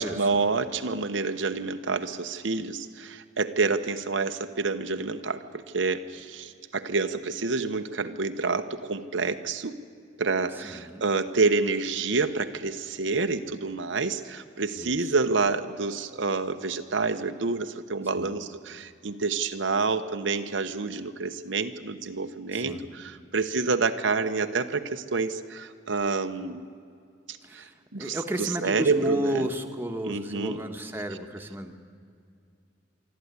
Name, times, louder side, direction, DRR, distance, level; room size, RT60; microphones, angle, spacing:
voice 1, 0.0-9.8 10.2-26.6 27.5-27.7 27.9-29.5 30.0-30.6, right 4 dB, 80° right, 7 dB, 1.0 m, -28 dB
voice 2, 10.5-11.1 14.8-15.1 18.2-18.3 22.5-22.9 27.4-31.7, equal, 10° right, 4 dB, 1.3 m, -33 dB
24.0 x 13.5 x 9.7 m, 2.3 s
head